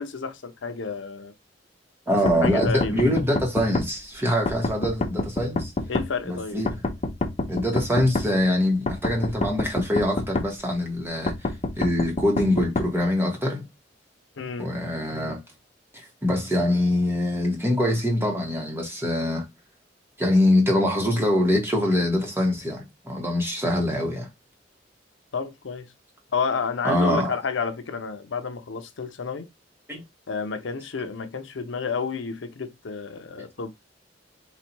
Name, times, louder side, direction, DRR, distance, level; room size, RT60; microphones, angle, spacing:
voice 1, 0.0-1.3 2.1-3.1 5.9-6.6 14.4-14.7 25.3-25.9 26.3-29.5 30.3-33.7, left 5 dB, 85° left, 0.6 m, -30 dB
voice 2, 2.1-5.7 6.2-6.8 7.5-13.6 14.6-15.4 15.9-19.5 20.2-24.3 26.8-27.3 29.9-30.0, left 1 dB, 15° right, 1.4 m, -24 dB
sound 1, 2.3-3.9 4.5-6.1 6.7-8.3 8.9-10.5 11.3-12.9, left 2 dB, 35° left, 0.6 m, -27 dB
4.1 x 2.6 x 4.4 m
head